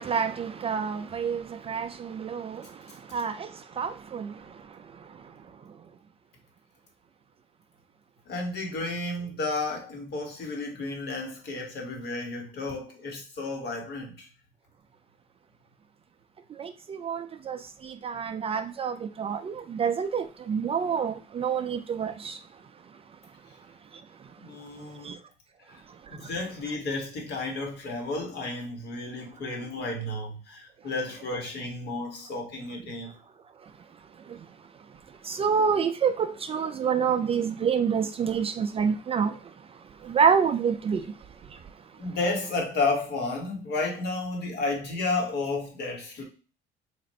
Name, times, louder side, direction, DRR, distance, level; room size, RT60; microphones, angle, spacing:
voice 1, 0.0-5.8 16.5-22.6 22.9-23.0 23.9-24.5 24.9-25.2 25.9-26.3 33.6-33.7 34.2-41.9, right 6 dB, 30° right, 0.3 m, -29 dB
voice 2, 8.3-14.3 24.4-25.2 25.7-25.8 26.1-33.1 42.0-46.2, left 3 dB, 60° left, 1.4 m, -32 dB
3.2 x 2.5 x 4.1 m
cardioid pair, 110°, 19 cm